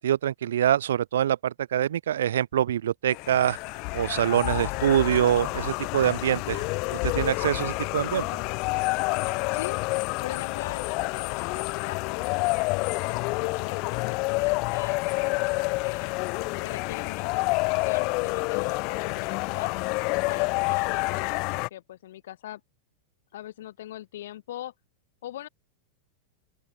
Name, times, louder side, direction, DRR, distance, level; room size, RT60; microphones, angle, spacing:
voice 1, 0.0-3.6 3.9-6.6 7.0-8.3, right 10 dB, 60° right, 1.5 m, -24 dB
sound 1, 3.1-21.7, left 28 dB, 45° left, 0.6 m, -28 dB
voice 2, 9.5-9.8 10.2-16.2 16.6-19.7 20.3-22.6 23.3-24.7 25.2-25.5, left 13 dB, 60° left, 7.9 m, -41 dB
open air
figure-of-eight pair, 90°, 0 cm